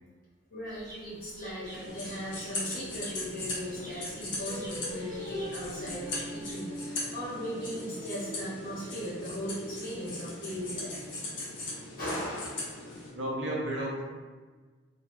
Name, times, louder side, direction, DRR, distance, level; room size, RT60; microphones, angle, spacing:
voice 1, 0.5-10.9 12.0-12.7, equal, 45° left, -9 dB, 1.0 m, -38 dB
sound 1, 0.6-6.5, right 1 dB, 20° right, 0.6 m, -50 dB
sound 2, 1.7-13.1, left 2 dB, 60° left, 0.6 m, -39 dB
Singing, 4.4-9.7, equal, 15° left, 0.8 m, -42 dB
voice 2, 13.2-14.0, right 1 dB, 60° right, -3 dB, 0.5 m, -33 dB
2.2 x 2.1 x 2.9 m, 1.4 s
head